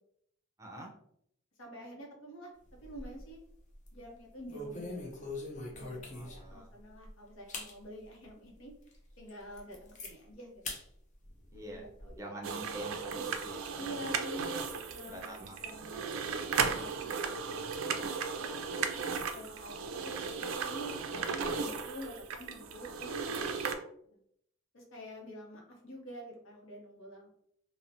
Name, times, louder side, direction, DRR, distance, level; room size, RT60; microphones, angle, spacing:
voice 1, 0.6-0.9 6.1-6.7 11.5-11.9 12.2-14.0 15.1-15.6, right 1 dB, 15° right, -1 dB, 0.5 m, -46 dB
voice 2, 1.6-2.5 2.8-3.4 3.9-5.3 5.7-8.7 9.2-10.6 11.5-12.3 13.8-16.0 16.3-18.5 19.3-20.2 20.5-23.9 24.7-27.3, equal, 75° left, -1 dB, 0.8 m, -47 dB
sound 1, 2.7-3.4 3.7-4.0 4.5-6.6 7.0-7.1 7.5-7.7 8.3-8.4 8.9-9.0 9.3-10.1 10.6-10.8 11.2-12.1, left 2 dB, 35° left, 0.5 m, -42 dB
sound 2, 12.4-23.7, right 5 dB, 80° right, 0.3 m, -36 dB
2.9 x 2.0 x 2.6 m, 0.71 s
head